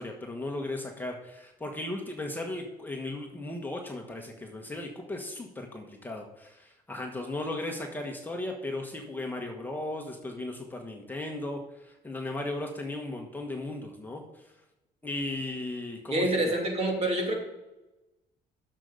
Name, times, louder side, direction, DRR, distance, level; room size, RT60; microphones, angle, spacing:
voice 1, 0.0-14.5 15.0-16.3, left 2 dB, 10° left, 1 dB, 1.3 m, -36 dB
voice 2, 16.1-17.3, right 1 dB, 40° right, 0 dB, 2.9 m, -27 dB
7.5 x 6.8 x 6.5 m, 0.98 s
cardioid pair, 110°, 17 cm